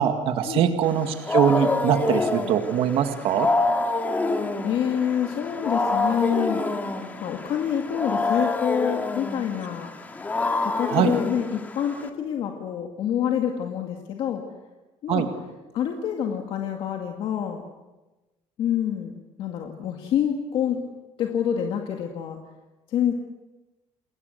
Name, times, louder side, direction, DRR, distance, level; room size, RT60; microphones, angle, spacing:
voice 1, 0.0-3.5 10.9-11.1 15.1-15.3, right 9 dB, 60° right, 7 dB, 2.1 m, -22 dB
Wild animals, 0.9-12.1, left 3 dB, 15° left, 2.1 m, -27 dB
voice 2, 4.6-6.6 7.2-9.9 10.6-14.4 15.0-15.3 15.7-17.6 18.6-20.8 21.2-22.4 22.9-23.1, left 9 dB, 50° left, 3 dB, 2.2 m, -27 dB
29.5 x 21.0 x 8.1 m, 1.1 s
cardioid pair, 170°, 11 cm